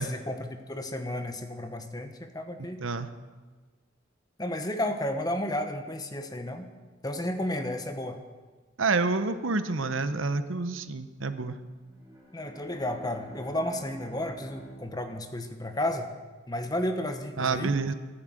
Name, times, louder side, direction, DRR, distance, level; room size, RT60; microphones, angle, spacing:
voice 1, 0.0-2.8 4.4-6.7 7.0-8.2 12.3-16.1 16.5-17.7, left 1 dB, 20° left, 6 dB, 1.1 m, -32 dB
voice 2, 2.6-3.1 8.8-11.6 17.4-17.9, right 3 dB, 80° right, 10 dB, 0.9 m, -28 dB
Bowed string instrument, 11.8-16.4, right 2 dB, 20° right, 4.4 m, -49 dB
14.0 x 12.5 x 7.7 m, 1.4 s
head